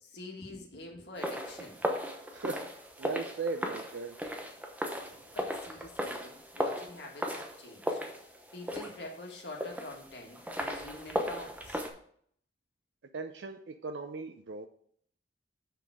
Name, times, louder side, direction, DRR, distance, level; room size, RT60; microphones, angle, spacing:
voice 1, 0.0-1.8 5.3-8.0 8.5-11.8, left 2 dB, 65° left, 1 dB, 1.9 m, -46 dB
sound 1, 1.2-11.9, equal, 10° right, 0.9 m, -37 dB
voice 2, 3.0-4.1 13.1-14.7, right 3 dB, 80° right, 6 dB, 0.6 m, -37 dB
7.0 x 5.9 x 4.8 m, 0.62 s
head